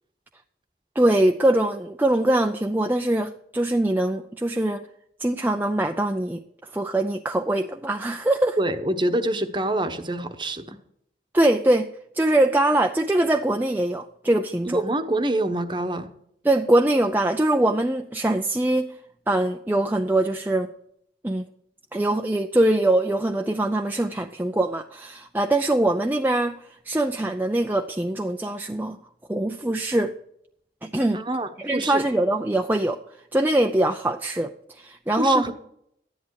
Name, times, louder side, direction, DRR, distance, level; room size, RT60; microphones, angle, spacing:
voice 1, 1.0-4.8 5.2-6.4 6.7-8.6 11.3-11.9 12.1-14.8 16.4-18.9 19.3-20.7 21.2-21.4 21.9-26.5 26.9-29.0 29.3-30.1 30.8-31.2 31.6-33.0 33.3-35.4, right 1 dB, 10° right, 4 dB, 0.5 m, -22 dB
voice 2, 8.6-10.8 14.7-16.1 31.1-32.0 35.2-35.5, right 1 dB, 25° right, 8 dB, 1.0 m, -26 dB
13.5 x 10.5 x 4.8 m, 0.72 s
head